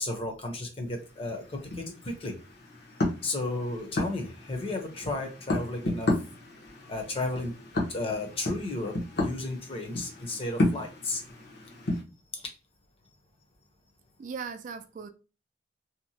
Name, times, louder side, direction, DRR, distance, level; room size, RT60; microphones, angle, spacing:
voice 1, 0.0-2.4 3.2-6.2 6.9-7.6 7.9-11.2, left 2 dB, 35° left, 0.7 m, -33 dB
sound 1, 0.9-12.0, left 1 dB, 65° left, 0.8 m, -33 dB
voice 2, 14.2-15.1, right 6 dB, 45° right, 0.3 m, -38 dB
2.8 x 2.1 x 2.7 m
head